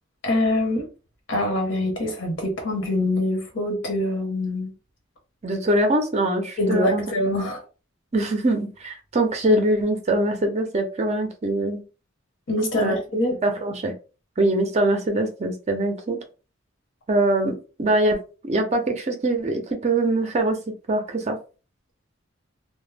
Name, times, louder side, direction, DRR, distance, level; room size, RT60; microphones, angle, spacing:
voice 1, 0.2-0.9 1.3-4.7 6.6-7.6 12.5-13.4, left 1 dB, 60° left, 0.9 m, -24 dB
voice 2, 5.4-7.0 8.1-11.8 12.8-13.0 13.4-13.9 14.4-16.2 17.1-18.2 18.4-20.6 20.9-21.4, right 1 dB, 35° right, 0.5 m, -23 dB
2.1 x 2.0 x 3.2 m
head